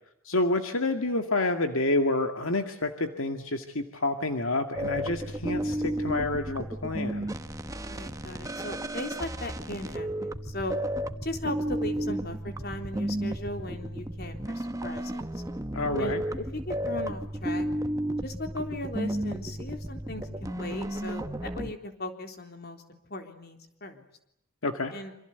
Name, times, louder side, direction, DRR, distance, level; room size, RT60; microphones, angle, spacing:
voice 1, 0.2-7.3 15.7-16.2 24.6-24.9, left 2 dB, 70° left, 6 dB, 2.1 m, -28 dB
sound 1, 4.8-21.7, right 1 dB, 15° right, 1.0 m, -33 dB
voice 2, 7.8-10.8 11.2-15.4 16.0-17.7 18.2-24.1 24.9-25.1, left 1 dB, 45° left, 5 dB, 3.7 m, -38 dB
27.0 x 27.0 x 8.1 m, 0.79 s
head